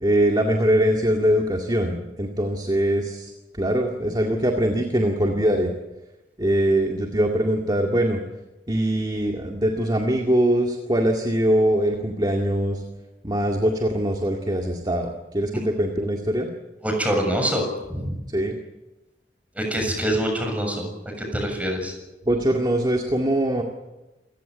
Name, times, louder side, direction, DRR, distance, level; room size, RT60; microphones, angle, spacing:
voice 1, 0.0-5.7 6.4-8.2 8.7-12.8 13.2-16.5 18.3-18.6 22.3-23.6, right 1 dB, 25° right, 3 dB, 2.1 m, -22 dB
voice 2, 16.8-18.2 19.5-21.9, equal, 10° right, 3 dB, 7.0 m, -25 dB
28.0 x 15.5 x 9.2 m, 1.0 s
head